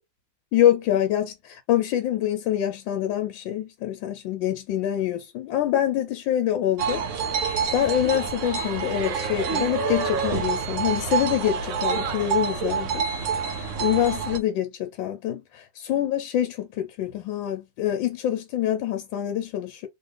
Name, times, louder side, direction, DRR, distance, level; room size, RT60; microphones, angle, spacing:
voice 1, 0.5-7.0 7.7-13.0 13.5-19.9, left 11 dB, 90° left, 1.4 m, -25 dB
sound 1, 6.8-14.4, right 6 dB, 75° right, 0.6 m, -27 dB
3.2 x 2.4 x 3.3 m
omnidirectional pair, 2.0 m